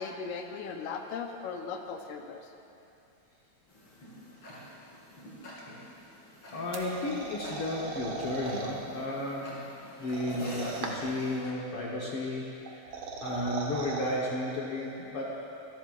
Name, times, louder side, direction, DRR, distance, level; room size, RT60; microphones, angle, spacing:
voice 1, 0.0-2.4, left 5 dB, 90° left, 4 dB, 2.3 m, -37 dB
Tick-tock, 3.7-11.5, left 1 dB, 40° left, 3.5 m, -48 dB
voice 2, 6.5-9.6 10.0-15.4, left 1 dB, 55° left, -5 dB, 1.9 m, -33 dB
sound 1, 6.7-8.7 10.0-11.2 12.7-14.1, right 4 dB, 55° right, 1.5 m, -38 dB
26.0 x 11.5 x 2.5 m, 2.8 s
omnidirectional pair, 3.3 m